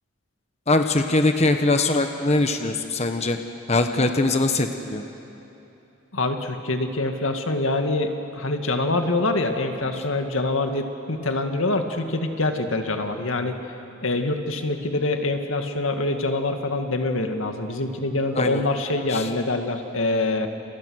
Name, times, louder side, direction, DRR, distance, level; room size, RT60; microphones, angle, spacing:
voice 1, 0.7-3.4 3.7-5.0 18.4-18.6 19.1-19.3, left 2 dB, 35° left, 6 dB, 1.2 m, -22 dB
voice 2, 6.1-13.6 14.0-20.5, left 2 dB, 90° left, 5 dB, 2.0 m, -25 dB
29.0 x 29.0 x 6.4 m, 2.9 s
head